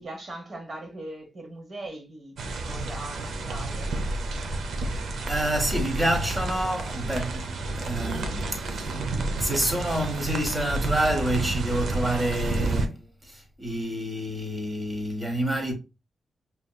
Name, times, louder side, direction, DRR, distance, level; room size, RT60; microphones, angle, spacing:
voice 1, 0.0-3.9, right 2 dB, 45° right, 1.4 m, -40 dB
sound 1, 2.4-12.9, right 2 dB, 80° right, 0.6 m, -30 dB
voice 2, 5.3-9.0 9.4-15.7, right 1 dB, 20° right, 1.3 m, -28 dB
5.2 x 2.9 x 2.2 m
wide cardioid pair, 110°, 0 cm